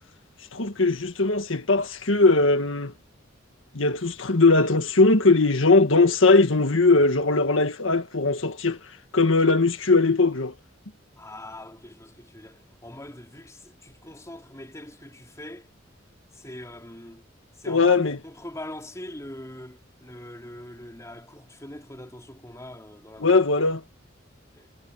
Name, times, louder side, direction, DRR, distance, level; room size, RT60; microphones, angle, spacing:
voice 1, 0.5-2.9 3.7-8.8 9.1-10.5 17.7-18.2 23.2-23.8, left 3 dB, 80° left, 1.7 m, -20 dB
voice 2, 11.1-15.7 16.3-17.3 17.6-23.5 24.5-24.7, left 1 dB, 15° left, 3.5 m, -42 dB
head